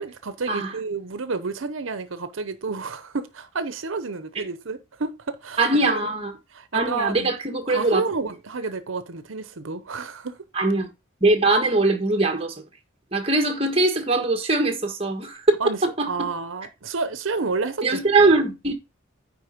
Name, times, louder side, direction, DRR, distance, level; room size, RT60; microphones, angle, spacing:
voice 1, 0.0-6.1 6.5-7.3 7.7-10.4 15.6-15.8 16.1-18.0, right 4 dB, 85° right, 0.8 m, -30 dB
voice 2, 5.6-6.3 6.7-8.0 10.5-10.9 11.2-12.5 13.1-15.4 16.0-16.3 17.8-18.7, right 2 dB, 30° right, 1.5 m, -21 dB
9.6 x 4.1 x 5.0 m
head